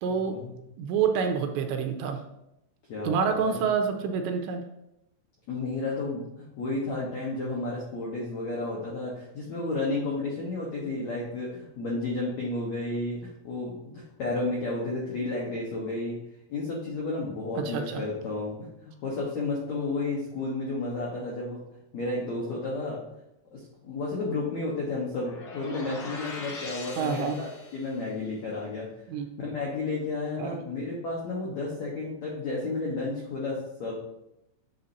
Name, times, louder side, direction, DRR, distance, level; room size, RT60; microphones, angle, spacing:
voice 1, 0.0-0.4 0.8-2.2 3.0-4.6 17.6-18.0 27.0-27.4 29.1-29.3 30.4-30.6, right 6 dB, 85° right, 5 dB, 2.8 m, -27 dB
voice 2, 2.9-3.7 5.5-16.2 16.5-21.6 21.9-23.0 23.5-28.9 29.4-33.9, left 2 dB, 90° left, -4 dB, 1.5 m, -32 dB
sound 1, 25.2-28.0, left 3 dB, 50° left, 2.7 m, -41 dB
8.5 x 7.2 x 2.8 m, 0.85 s
omnidirectional pair, 5.3 m